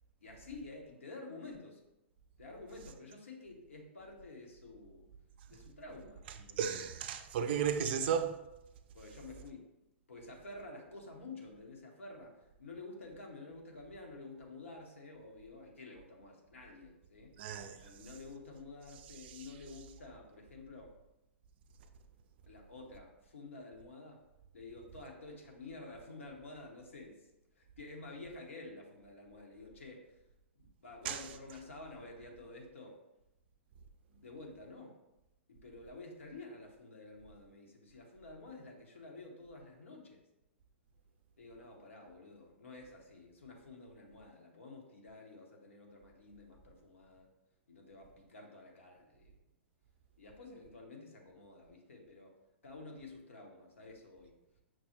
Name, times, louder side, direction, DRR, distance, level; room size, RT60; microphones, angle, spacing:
voice 1, 0.2-1.8 2.4-5.1 5.5-6.8 8.9-9.7 10.1-17.3 17.8-20.9 22.5-24.2 24.5-27.3 27.5-30.1 30.6-33.0 34.1-35.0 35.5-40.2 41.4-47.3 47.7-49.4 50.2-52.4 52.6-54.3, left 3 dB, 80° left, 0.8 m, -50 dB
voice 2, 6.6-8.4 17.4-17.8 19.2-19.4 31.0-31.2, right 7 dB, 55° right, 0.4 m, -34 dB
5.9 x 2.0 x 2.9 m
hypercardioid pair, 115°, 7 cm